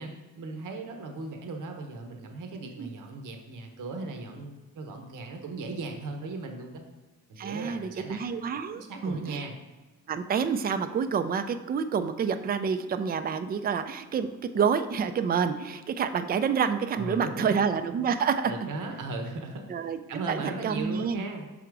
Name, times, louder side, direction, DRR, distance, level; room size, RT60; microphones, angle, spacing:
voice 1, 0.0-6.8 7.3-8.2 8.5-9.5 16.9-17.6 18.4-21.5, right 3 dB, 75° right, 4 dB, 1.0 m, -37 dB
voice 2, 7.4-9.5 10.1-18.5 19.7-20.0 20.3-21.2, right 6 dB, 30° right, 10 dB, 0.4 m, -28 dB
5.7 x 3.7 x 4.6 m, 1.3 s
cardioid pair, 100°, 31 cm